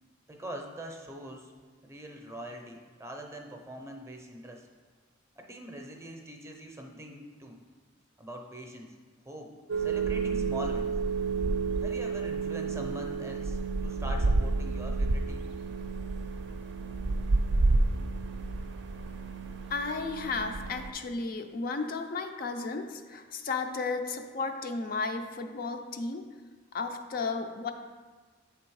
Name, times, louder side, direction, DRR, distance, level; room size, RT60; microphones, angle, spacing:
voice 1, 0.3-1.5 1.8-4.7 5.4-7.6 8.2-8.9 9.3-9.5 9.8-11.0 11.8-15.5, equal, 15° right, 2 dB, 0.6 m, -43 dB
sound 1, 9.7-20.9, right 3 dB, 60° right, 0.5 m, -30 dB
voice 2, 19.7-26.2 26.7-27.7, left 4 dB, 50° left, 5 dB, 0.4 m, -33 dB
8.2 x 3.4 x 4.7 m, 1.5 s
head